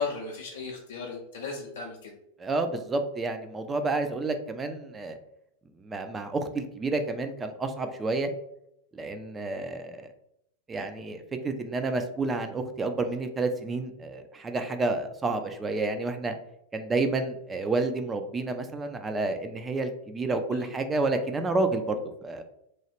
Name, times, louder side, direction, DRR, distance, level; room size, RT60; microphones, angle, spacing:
voice 1, 0.0-2.1 20.5-20.7, left 5 dB, 60° left, -1 dB, 0.5 m, -35 dB
voice 2, 2.4-5.2 5.8-8.3 8.9-10.1 10.7-16.3 16.7-22.4, right 3 dB, 15° right, 7 dB, 0.3 m, -30 dB
3.0 x 2.3 x 2.9 m, 0.79 s
figure-of-eight pair, 90°, 0 cm